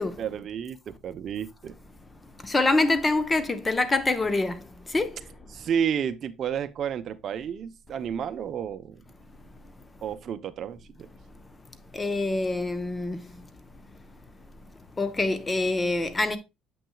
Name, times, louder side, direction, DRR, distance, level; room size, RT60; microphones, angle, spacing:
voice 1, 0.2-1.8 5.5-9.0 10.0-11.1, right 8 dB, 50° right, 0.6 m, -31 dB
voice 2, 2.4-4.6 4.9-5.1 11.9-13.2 15.0-16.4, left 2 dB, 20° left, 0.9 m, -25 dB
7.9 x 6.1 x 2.3 m
cardioid pair, 105°, 0 cm